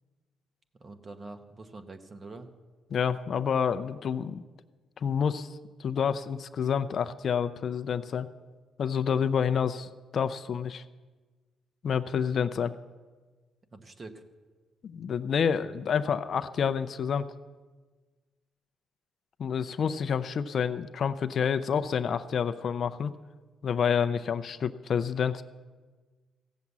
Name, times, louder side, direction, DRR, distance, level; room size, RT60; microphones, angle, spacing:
voice 1, 0.8-2.5 13.7-14.2, right 3 dB, 35° right, 7 dB, 1.2 m, -45 dB
voice 2, 2.9-4.4 5.0-8.3 8.8-10.8 11.8-12.7 14.8-17.3 19.4-23.1 23.6-25.4, left 7 dB, 55° left, 11 dB, 0.5 m, -28 dB
15.5 x 7.3 x 8.2 m, 1.4 s
cardioid pair, 90°, 0 cm